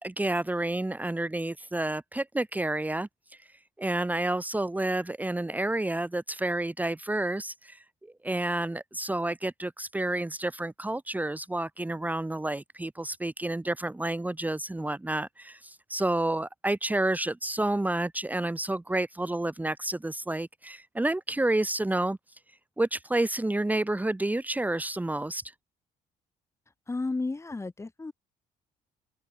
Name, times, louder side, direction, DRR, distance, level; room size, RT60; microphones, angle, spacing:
voice 1, 0.0-3.1 3.4-3.5 3.8-22.2 22.8-25.4, right 1 dB, 10° right, 2.7 m, -30 dB
voice 2, 26.9-28.1, left 3 dB, 15° left, 2.4 m, -32 dB
cardioid pair, 110°, 17 cm